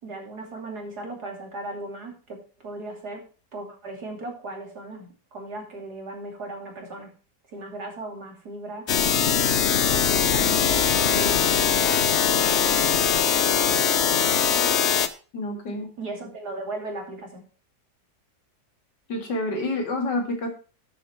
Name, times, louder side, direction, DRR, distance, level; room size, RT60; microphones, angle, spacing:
voice 1, 0.0-7.1 7.5-8.9 9.9-12.9 13.7-14.2 16.0-17.4, right 2 dB, 65° right, 1 dB, 3.4 m, -37 dB
sound 1, 8.9-15.1, left 8 dB, 55° left, 0.8 m, -21 dB
voice 2, 15.3-15.9 19.1-20.5, left 2 dB, 80° left, 4 dB, 2.9 m, -28 dB
11.5 x 7.3 x 4.6 m, 0.35 s
omnidirectional pair, 1.8 m